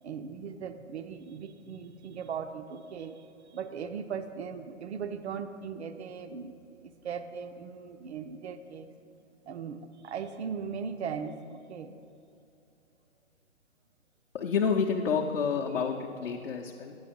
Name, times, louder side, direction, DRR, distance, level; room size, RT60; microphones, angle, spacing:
voice 1, 0.0-8.9 9.4-12.0 15.7-15.8, right 6 dB, 60° right, 9 dB, 0.6 m, -39 dB
voice 2, 14.3-17.0, left 6 dB, 50° left, -1 dB, 0.7 m, -29 dB
9.7 x 6.7 x 5.1 m, 2.6 s
figure-of-eight pair, 140°, 39 cm